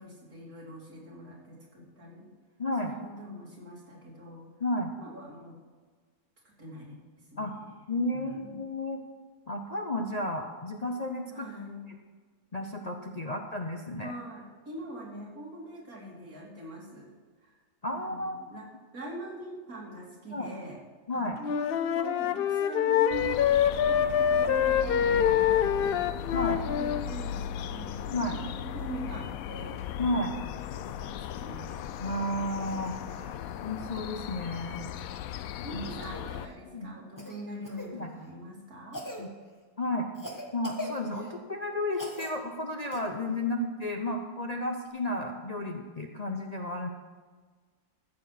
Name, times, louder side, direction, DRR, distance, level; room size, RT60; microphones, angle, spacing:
voice 1, 0.0-2.3 2.8-4.5 5.0-5.6 6.5-7.6 8.1-8.6 11.3-11.9 13.3-13.4 14.0-17.1 17.4-17.5 17.9-18.7 18.9-20.8 21.1-23.5 23.8-26.2 26.7-29.8 30.7-31.8 33.0-33.6 35.0-35.3 35.6-39.0, right 1 dB, 70° right, -4 dB, 3.5 m, -43 dB
voice 2, 2.6-2.9 4.6-4.9 7.4-7.5 7.9-9.0 9.5-11.5 11.9-12.0 12.5-14.1 17.8-18.4 20.3-20.5 21.1-21.4 26.3-26.6 28.1-28.4 30.0-30.3 32.0-33.0 33.6-34.9 35.7-35.8 36.7-37.0 37.9-38.1 39.2-39.3 39.8-40.1 40.5-46.9, left 1 dB, 35° left, 2 dB, 0.7 m, -32 dB
Wind instrument woodwind instrument, 21.4-27.1, left 9 dB, 90° left, 0.5 m, -25 dB
sound 1, 23.1-36.5, left 9 dB, 75° left, 1.0 m, -37 dB
Cough, 36.0-36.2 37.2-37.9 38.9-39.2 40.2-41.4 41.9-42.3 42.9-43.0 44.9-45.0, left 1 dB, 15° left, 1.3 m, -40 dB
14.0 x 7.5 x 5.9 m, 1.5 s
omnidirectional pair, 1.6 m